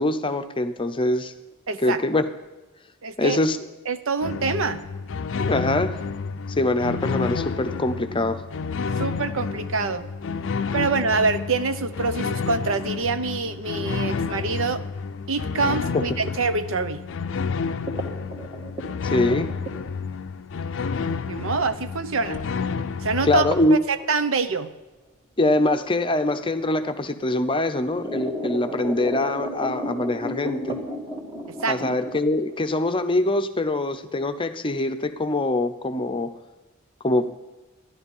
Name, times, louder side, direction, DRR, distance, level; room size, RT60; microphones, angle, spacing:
voice 1, 0.0-1.3 1.8-2.3 3.2-3.6 5.4-6.0 6.5-8.4 15.9-16.0 19.0-19.5 23.2-23.8 25.4-30.8 31.7-36.3 37.0-37.3, left 2 dB, 25° left, 8 dB, 0.7 m, -23 dB
voice 2, 1.7-2.0 3.0-3.4 3.9-4.8 9.0-10.1 10.7-14.8 15.3-17.0 21.3-22.4 23.0-23.5 23.7-24.7 31.5-31.8, right 4 dB, 65° right, 11 dB, 0.7 m, -25 dB
sound 1, 4.2-23.7, left 5 dB, 60° left, 0.5 m, -30 dB
sound 2, 17.9-20.3 21.0-21.1 22.3-22.5 22.8-22.9 23.5-23.7 24.0-24.8 26.0-26.1 27.0-27.1 27.5-32.1, equal, 20° right, 1.9 m, -32 dB
14.0 x 11.0 x 5.4 m, 1.1 s
head